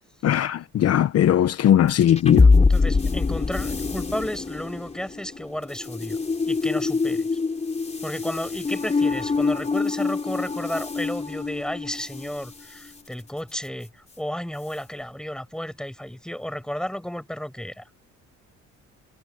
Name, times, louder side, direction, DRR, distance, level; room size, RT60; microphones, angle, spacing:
voice 1, 0.2-2.5, left 11 dB, 55° left, 1.0 m, -19 dB
sound 1, 1.9-12.4, left 4 dB, 20° left, 4.0 m, -24 dB
voice 2, 2.6-6.2 6.4-7.3 8.0-13.9 14.2-17.8, equal, ahead, 6.9 m, -33 dB
cardioid pair, 105°, 29 cm